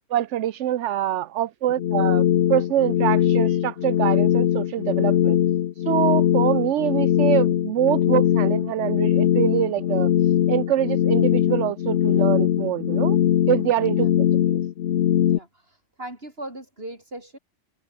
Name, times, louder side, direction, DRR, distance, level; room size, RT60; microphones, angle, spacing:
voice 1, 0.1-5.4 5.8-10.1 10.5-13.2 13.5-14.6, right 12 dB, 75° right, 1.0 m, -25 dB
sound 1, 1.7-15.4, left 11 dB, 65° left, 0.9 m, -21 dB
voice 2, 16.0-17.4, right 1 dB, 55° right, 7.4 m, -38 dB
omnidirectional pair, 1.2 m